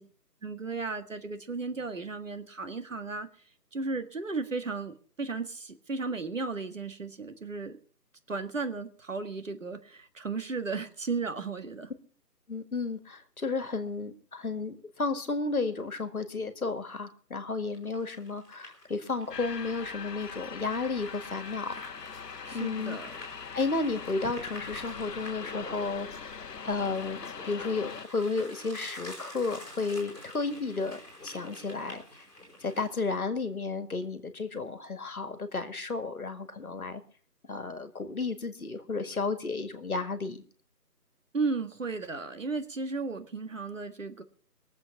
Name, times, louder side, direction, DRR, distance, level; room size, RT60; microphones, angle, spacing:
voice 1, 0.4-3.3 3.7-7.7 8.3-11.9 22.4-23.1 41.3-44.2, right 4 dB, 50° right, 9 dB, 1.7 m, -34 dB
voice 2, 12.5-21.7 22.5-23.0 23.5-26.3 26.6-32.0 32.6-37.0 37.5-40.4, left 3 dB, 60° left, 9 dB, 2.0 m, -33 dB
sound 1, 17.7-33.2, left 1 dB, 5° right, 2.5 m, -48 dB
sound 2, 19.3-28.1, left 6 dB, 80° left, 1.0 m, -42 dB
21.5 x 7.8 x 5.8 m, 0.43 s
figure-of-eight pair, 180°, 49 cm